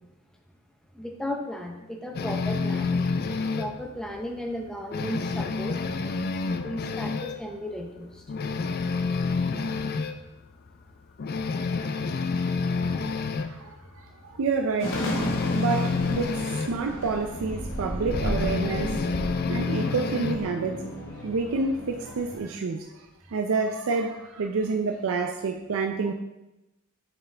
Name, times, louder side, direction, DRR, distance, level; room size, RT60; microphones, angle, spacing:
voice 1, 0.9-5.8 6.6-8.1, left 1 dB, 5° left, 1 dB, 0.6 m, -35 dB
sound 1, 2.1-3.8 4.2-4.3 4.7-7.4 7.8-7.9 8.3-10.2 10.7-10.8 11.2-13.5 14.8-16.7 18.1-20.5, left 4 dB, 45° left, 0.4 m, -28 dB
voice 2, 13.4-15.3 15.6-19.0 19.5-20.9 21.2-26.1, right 4 dB, 65° right, 4 dB, 0.4 m, -29 dB
sound 2, 14.8-22.4, equal, 60° left, 1.4 m, -33 dB
7.3 x 5.7 x 3.3 m, 0.95 s
head